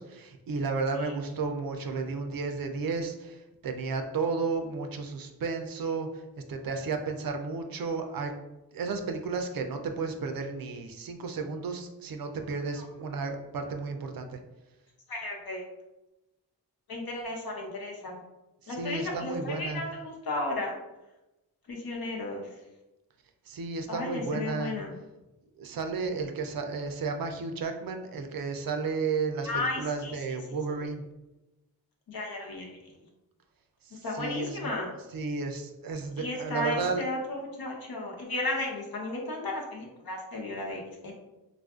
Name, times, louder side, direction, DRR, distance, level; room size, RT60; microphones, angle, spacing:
voice 1, 0.0-8.3 8.7-14.4 18.6-19.8 23.5-24.8 25.6-31.0 33.8-34.7 35.1-37.1, right 4 dB, 65° right, 5 dB, 0.5 m, -33 dB
voice 2, 15.1-15.6 16.9-18.2 18.7-20.7 21.7-22.5 23.9-24.9 29.4-30.1 32.1-32.7 34.0-34.9 36.2-41.1, left 2 dB, 65° left, -1 dB, 0.9 m, -34 dB
3.6 x 2.5 x 2.4 m, 1.0 s
cardioid pair, 50°, 38 cm